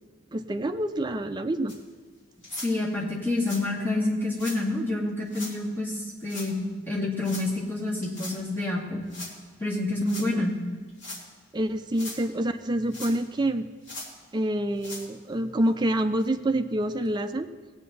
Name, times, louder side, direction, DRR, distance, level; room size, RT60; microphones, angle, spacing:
voice 1, 0.3-1.8 10.4-10.5 11.5-13.7 14.3-17.5, right 1 dB, 20° right, 8 dB, 0.4 m, -27 dB
sound 1, 1.7-1.8 2.4-2.7 3.4-3.6 4.3-4.6 5.3-5.5 6.3-6.5 7.2-7.5 8.0-8.4 9.1-9.3 10.0-10.3 10.9-11.2 11.8-12.2 12.9-13.4 13.8-14.1 14.7-15.1 15.7-15.8 16.2-16.3 17.1-17.2, left 2 dB, 65° left, 2.4 m, -40 dB
voice 2, 2.6-9.0 9.6-10.5, left 2 dB, 10° left, -5 dB, 2.3 m, -28 dB
17.5 x 8.4 x 4.1 m, 1.4 s
head